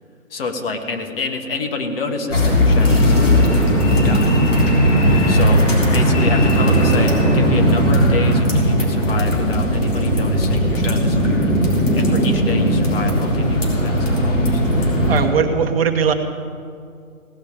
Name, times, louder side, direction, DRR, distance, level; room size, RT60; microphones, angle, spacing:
voice 1, 0.3-3.5 3.9-4.3 5.3-11.5 11.9-14.6, left 3 dB, 45° left, 5 dB, 1.4 m, -28 dB
sound 1, 2.3-15.3, equal, 60° left, 3.9 m, -17 dB
sound 2, 2.8-8.0, left 2 dB, 90° left, 4.3 m, -32 dB
voice 2, 15.1-16.1, right 7 dB, 45° right, 6 dB, 1.0 m, -18 dB
17.0 x 6.1 x 8.6 m, 2.3 s
hypercardioid pair, 150°, 42 cm